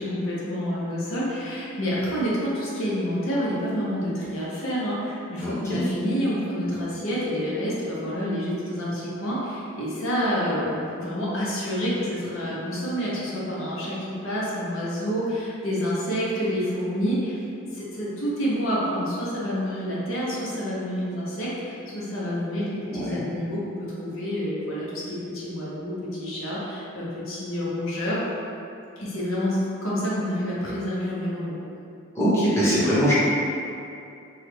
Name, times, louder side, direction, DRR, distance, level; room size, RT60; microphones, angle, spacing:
voice 1, 0.0-17.3 17.7-28.2 29.0-31.6, equal, 80° left, -7 dB, 0.7 m, -28 dB
voice 2, 5.4-5.8 22.9-23.2 32.1-33.1, equal, 15° left, -12 dB, 0.8 m, -22 dB
3.1 x 2.3 x 3.3 m, 2.6 s
head